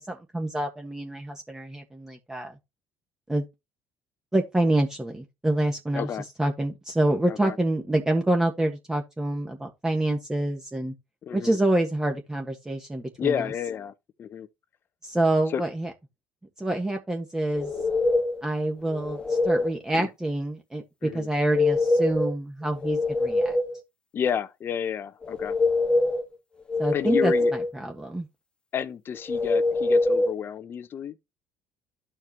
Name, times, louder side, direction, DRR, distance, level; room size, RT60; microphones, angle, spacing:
voice 1, 0.0-2.5 3.3-3.4 4.3-6.1 6.4-10.9 11.3-13.4 15.0-15.9 16.6-17.7 18.4-23.6 26.8-27.3 27.7-28.3, right 1 dB, 10° right, 1.4 m, -27 dB
voice 2, 5.9-6.2 7.3-7.6 11.2-11.6 13.2-13.9 14.2-14.5 15.5-15.6 19.9-20.1 21.0-21.3 24.1-25.6 26.9-27.5 28.7-31.2, left 8 dB, 45° left, 0.9 m, -30 dB
sound 1, 17.5-18.4 18.9-19.7 21.3-22.3 22.7-23.8 25.2-26.2 26.7-27.7 29.3-30.3, left 2 dB, 20° left, 1.5 m, -24 dB
13.0 x 4.6 x 2.9 m
supercardioid pair, 85°, 5 cm